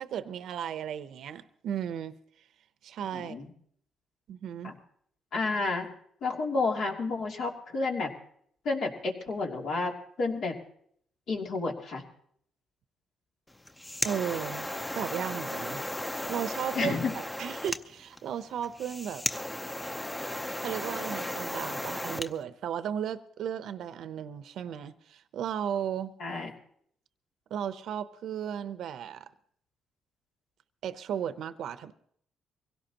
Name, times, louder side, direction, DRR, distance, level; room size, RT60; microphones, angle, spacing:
voice 1, 0.0-2.2 2.8-3.4 4.3-4.7 14.0-14.7 14.9-15.8 16.3-19.3 20.6-26.1 27.5-29.3 30.8-31.9, right 9 dB, 75° right, 0.7 m, -35 dB
voice 2, 3.1-3.5 4.6-4.8 5.3-5.9 6.2-8.1 8.6-10.6 11.3-12.0 16.7-17.1 26.2-26.5, left 3 dB, 70° left, 2.8 m, -30 dB
sound 1, 13.5-22.3, left 1 dB, 15° left, 0.7 m, -35 dB
24.0 x 17.0 x 2.9 m
cardioid pair, 90°, 0 cm